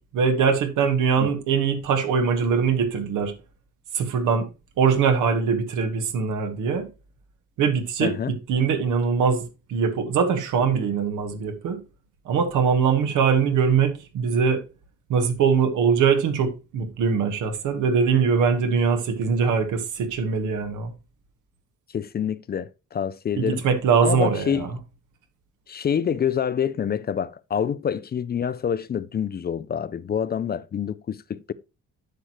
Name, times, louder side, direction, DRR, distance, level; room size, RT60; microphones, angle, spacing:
voice 1, 0.1-3.3 3.9-4.5 4.8-6.8 7.6-11.8 12.2-14.6 15.1-20.9 23.4-24.8, right 6 dB, 85° right, 1.4 m, -22 dB
voice 2, 8.0-8.3 21.9-23.6 24.0-24.7 25.7-31.5, left 8 dB, 35° left, 0.4 m, -27 dB
10.0 x 6.2 x 3.0 m
cardioid pair, 90°, 30 cm